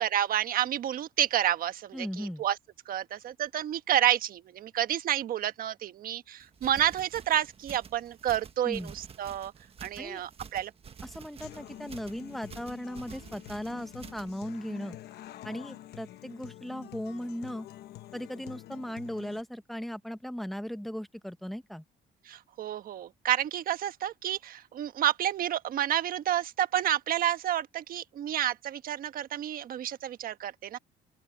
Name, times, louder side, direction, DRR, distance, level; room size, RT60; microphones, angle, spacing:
voice 1, 0.0-2.6 2.9-9.5 9.8-10.7 22.2-30.8, right 11 dB, 60° right, 1.3 m, -30 dB
voice 2, 1.9-2.4 8.6-8.9 10.0-10.2 11.0-15.0 15.4-17.7 18.1-21.8, equal, ahead, 1.0 m, -37 dB
sound 1, 6.4-14.4, right 6 dB, 35° right, 1.4 m, -49 dB
Human voice / Acoustic guitar, 11.4-19.4, left 14 dB, 70° left, 1.1 m, -47 dB
open air
cardioid pair, 110°, 17 cm